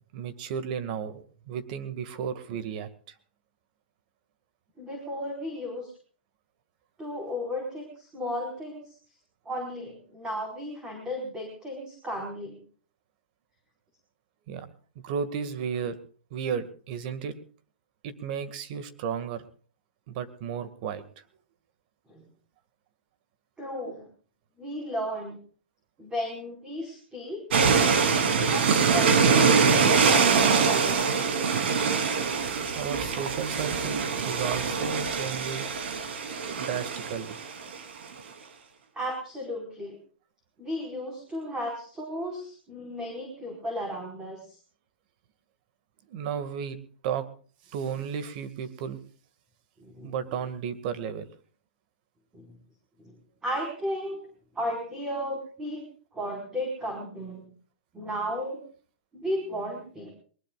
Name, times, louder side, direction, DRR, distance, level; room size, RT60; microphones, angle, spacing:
voice 1, 0.1-3.2 14.5-14.7 15.0-16.0 16.3-17.3 18.0-19.5 20.1-21.0 32.7-35.7 36.6-37.4 46.1-46.8 47.0-47.2 47.7-49.0 50.0-51.3, right 7 dB, 45° right, 12 dB, 2.0 m, -33 dB
voice 2, 4.8-5.9 7.0-9.0 9.4-12.6 22.1-22.2 23.6-24.1 24.6-25.4 26.0-27.4 28.5-31.0 38.9-40.0 40.6-44.6 49.8-50.4 52.3-52.5 53.0-53.1 53.4-54.2 54.5-57.5 57.9-58.7 59.1-60.1, equal, 10° right, 1 dB, 4.9 m, -34 dB
sound 1, 27.5-37.8, right 5 dB, 70° right, 3.2 m, -24 dB
22.5 x 20.0 x 2.4 m, 0.41 s
hypercardioid pair, 150°, 6 cm